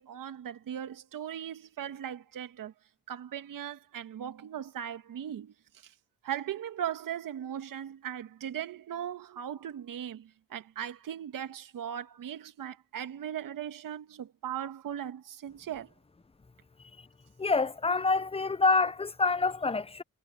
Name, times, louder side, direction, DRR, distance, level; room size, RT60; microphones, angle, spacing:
voice 1, 0.0-2.7 3.1-5.5 5.8-5.9 6.2-15.9, right 10 dB, 80° right, 2.0 m, -38 dB
voice 2, 17.4-20.0, left 3 dB, 20° left, 0.7 m, -27 dB
supercardioid pair, 45°, 32 cm